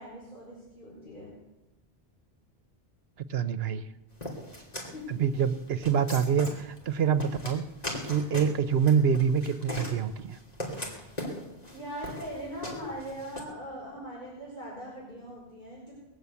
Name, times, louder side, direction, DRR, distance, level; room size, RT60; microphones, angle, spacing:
voice 1, 0.0-1.3 4.2-4.4 4.7-5.1 11.7-15.9, equal, 55° left, -7 dB, 5.2 m, -41 dB
voice 2, 3.3-3.8 5.1-7.7 8.0-10.4, right 7 dB, 70° right, 12 dB, 1.0 m, -26 dB
sound 1, 4.2-13.4, left 1 dB, 40° left, 2.9 m, -39 dB
20.0 x 8.0 x 8.3 m, 1.0 s
omnidirectional pair, 1.1 m